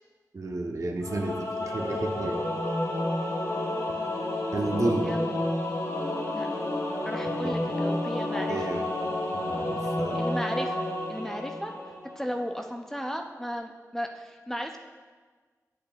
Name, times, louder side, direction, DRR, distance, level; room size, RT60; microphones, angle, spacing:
voice 1, 0.3-2.4 4.5-5.1 7.4-7.6 8.5-8.9 9.3-10.2, right 2 dB, 60° right, 3 dB, 0.8 m, -31 dB
Singing / Musical instrument, 1.0-12.3, left 1 dB, 75° left, 1.9 m, -30 dB
voice 2, 7.0-8.7 10.1-11.7 12.2-14.8, equal, 5° left, 3 dB, 0.4 m, -35 dB
8.5 x 8.4 x 2.4 m, 1.5 s
wide cardioid pair, 70°, 6 cm